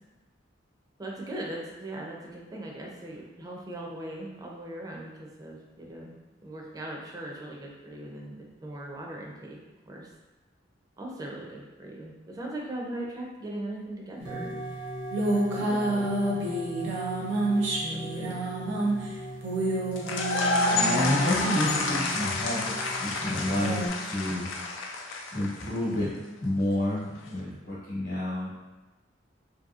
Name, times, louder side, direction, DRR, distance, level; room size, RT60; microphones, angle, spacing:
voice 1, 1.0-6.1 6.4-9.6 9.9-10.1 11.0-14.6 15.3-16.1 17.9-18.4 19.0-19.1, right 1 dB, 20° right, -2 dB, 0.4 m, -39 dB
sound 1, 14.2-23.9, right 1 dB, 70° right, 0.5 m, -30 dB
sound 2, 20.0-25.9, left 2 dB, 85° left, 0.4 m, -29 dB
voice 2, 20.7-24.5 25.3-26.1 26.4-28.5, left 1 dB, 50° left, -8 dB, 1.0 m, -29 dB
2.7 x 2.6 x 2.4 m, 1.2 s
head